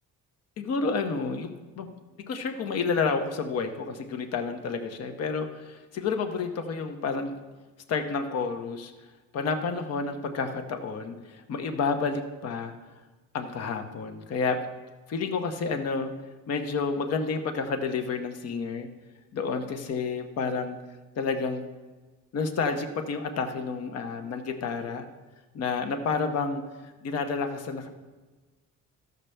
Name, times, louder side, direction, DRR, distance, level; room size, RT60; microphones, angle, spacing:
voice 1, 0.6-1.9 2.3-7.4 7.9-8.9 9.3-12.7 13.3-14.6 15.1-16.1 16.5-18.9 19.3-20.8 21.2-21.6 22.3-25.1 25.5-27.9, left 4 dB, 50° left, 7 dB, 0.8 m, -30 dB
13.5 x 6.6 x 3.3 m, 1.2 s
cardioid pair, 155°, 32 cm